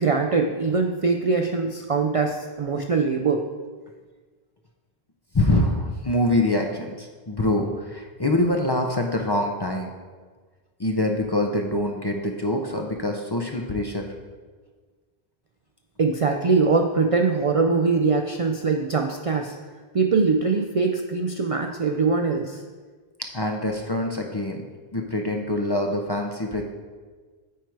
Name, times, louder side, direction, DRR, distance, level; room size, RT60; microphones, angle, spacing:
voice 1, 0.0-3.4 16.0-19.6 19.9-22.6, right 4 dB, 50° right, 3 dB, 0.4 m, -22 dB
voice 2, 5.3-9.9 10.8-14.1 23.2-24.7 24.9-26.6, left 1 dB, 30° left, 2 dB, 0.5 m, -25 dB
9.1 x 4.7 x 4.6 m, 1.5 s
omnidirectional pair, 1.0 m